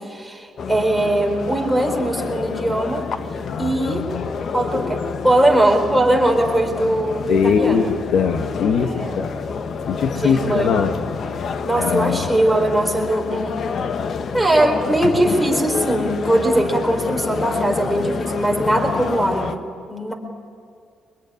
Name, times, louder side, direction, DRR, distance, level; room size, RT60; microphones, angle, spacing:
voice 1, 0.0-3.0 3.6-4.1 4.5-7.8 8.7-9.2 10.1-10.8 11.6-13.6 14.3-19.6 19.9-20.1, right 1 dB, ahead, 2 dB, 4.1 m, -20 dB
sound 1, 0.6-19.5, left 5 dB, 55° left, 1.1 m, -28 dB
voice 2, 3.5-4.2 7.3-9.4 9.9-10.9 11.8-12.3, left 6 dB, 75° left, 6 dB, 1.7 m, -21 dB
23.5 x 21.5 x 9.9 m, 2.3 s
cardioid pair, 90°, 0 cm